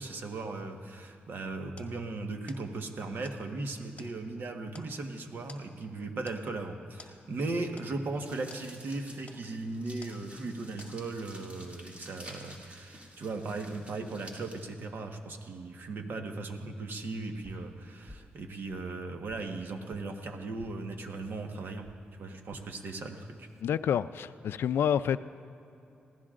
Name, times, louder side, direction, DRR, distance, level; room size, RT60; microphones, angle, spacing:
voice 1, 0.0-21.9 22.2-23.5, right 3 dB, 65° right, 4 dB, 1.3 m, -37 dB
sound 1, 1.8-10.5 10.8-11.4, left 3 dB, 35° left, 1.7 m, -56 dB
sound 2, 8.2-14.7, right 1 dB, 35° right, 2.6 m, -51 dB
sound 3, 17.4-17.7 18.1-18.4 18.7-19.5 19.9-20.1 20.6-20.8 21.2-21.4 21.8-22.0 22.5-22.7 23.3-23.6, left 1 dB, ahead, 0.8 m, -53 dB
voice 2, 23.6-25.2, left 9 dB, 85° left, 14 dB, 0.3 m, -28 dB
26.0 x 16.5 x 2.5 m, 2.7 s
cardioid pair, 95°, 4 cm